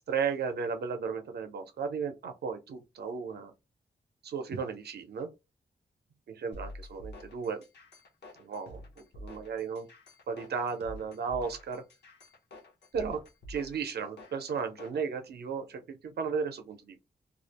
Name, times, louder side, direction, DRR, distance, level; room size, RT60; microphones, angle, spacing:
voice 1, 0.0-3.5 4.2-5.3 6.3-7.7 8.4-9.9 10.3-11.8 12.9-17.0, right 6 dB, 75° right, 0.6 m, -35 dB
sound 1, 6.5-15.0, left 1 dB, 85° left, 0.7 m, -48 dB
2.3 x 2.0 x 2.8 m
wide cardioid pair, 140°, 17 cm